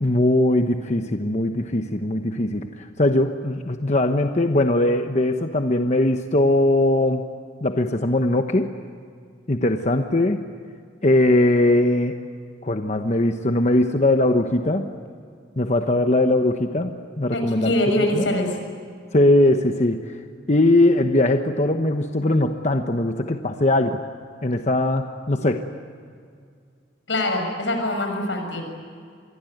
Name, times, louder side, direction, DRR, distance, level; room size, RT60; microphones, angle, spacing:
voice 1, 0.0-7.2 7.6-8.7 9.5-10.4 11.0-12.2 12.6-14.9 15.6-16.9 17.2-17.7 18.1-18.3 19.1-20.1 20.5-24.0 24.4-25.6, left 1 dB, 40° left, 5 dB, 1.1 m, -20 dB
voice 2, 17.3-18.5 27.1-28.7, left 1 dB, 85° left, 4 dB, 6.6 m, -23 dB
26.5 x 22.5 x 9.3 m, 2.2 s
head